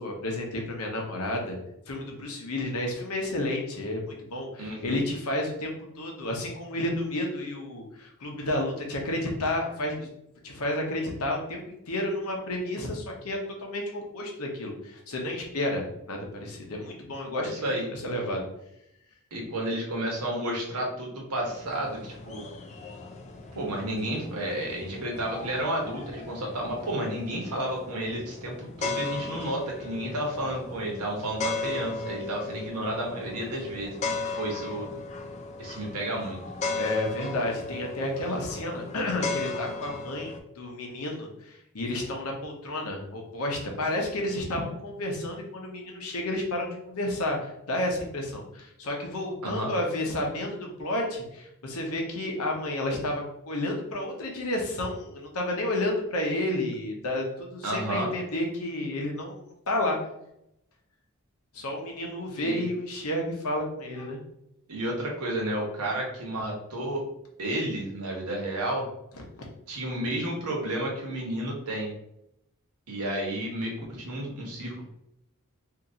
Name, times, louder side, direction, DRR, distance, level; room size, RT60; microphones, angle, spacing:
voice 1, 0.0-1.6 1.9-10.1 10.4-17.6 17.9-18.4 36.8-59.4 59.7-60.0 61.5-64.2, left 1 dB, 75° left, 0 dB, 0.9 m, -31 dB
voice 2, 4.6-5.0 17.5-17.9 19.3-22.4 23.5-33.9 34.3-34.9 35.6-36.4 49.4-49.7 57.6-58.1 62.4-62.7 64.7-67.0 67.4-68.9 69.7-71.9 72.9-74.8, right 1 dB, 85° right, -1 dB, 1.1 m, -31 dB
sound 1, 21.4-40.4, left 3 dB, 30° left, 0.4 m, -37 dB
2.9 x 2.6 x 3.7 m, 0.80 s
head